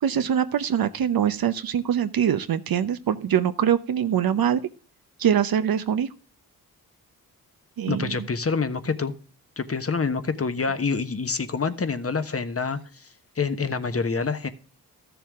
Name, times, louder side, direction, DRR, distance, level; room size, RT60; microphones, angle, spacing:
voice 1, 0.0-4.6 5.2-6.1 7.8-8.1, right 9 dB, 70° right, 11 dB, 0.8 m, -23 dB
voice 2, 7.9-9.1 9.6-13.1 13.4-14.5, left 4 dB, 40° left, 11 dB, 1.2 m, -27 dB
13.5 x 7.1 x 3.6 m, 0.38 s
cardioid pair, 55°, 37 cm